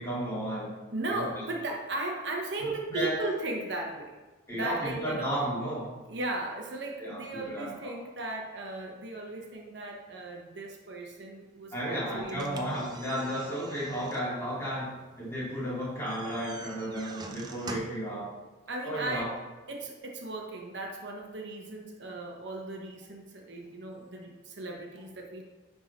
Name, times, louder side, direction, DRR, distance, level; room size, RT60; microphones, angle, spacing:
voice 1, 0.0-0.8 1.1-1.3 2.6-3.2 4.5-5.9 7.0-7.9 11.7-18.3 18.8-19.3, equal, 15° left, -8 dB, 2.3 m, -33 dB
voice 2, 0.9-4.2 4.5-5.4 6.1-12.6 18.7-19.4 19.7-25.4, right 2 dB, 60° right, 1 dB, 0.9 m, -36 dB
sound 1, 12.3-18.1, right 3 dB, 20° right, 0.5 m, -46 dB
10.0 x 3.7 x 4.1 m, 1.2 s
head